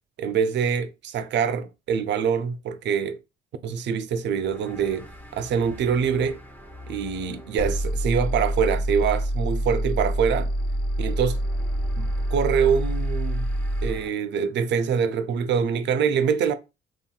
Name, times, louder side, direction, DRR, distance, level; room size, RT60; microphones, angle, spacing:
voice 1, 0.2-3.2 3.6-5.1 5.3-6.4 6.9-10.5 11.0-11.4 12.0-13.5 13.8-16.5, right 7 dB, 65° right, 0.4 m, -24 dB
sound 1, 4.2-14.1, left 1 dB, 10° left, 0.6 m, -45 dB
sound 2, 7.6-14.0, right 1 dB, 50° left, 0.5 m, -26 dB
3.0 x 2.7 x 2.2 m
cardioid pair, 90°, 20 cm